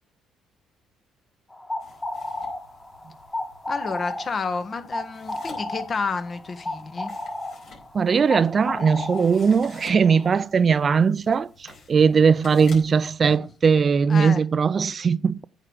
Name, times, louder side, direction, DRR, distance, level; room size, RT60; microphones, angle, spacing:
sound 1, 1.5-10.3, left 2 dB, 15° left, 1.6 m, -33 dB
sound 2, 1.8-13.1, left 2 dB, 60° left, 4.7 m, -50 dB
voice 1, 3.7-7.1 13.3-13.5 14.1-14.4, left 4 dB, 45° left, 1.2 m, -30 dB
voice 2, 7.9-15.4, right 6 dB, 45° right, 0.4 m, -20 dB
8.8 x 4.8 x 6.4 m
hypercardioid pair, 55°, 0 cm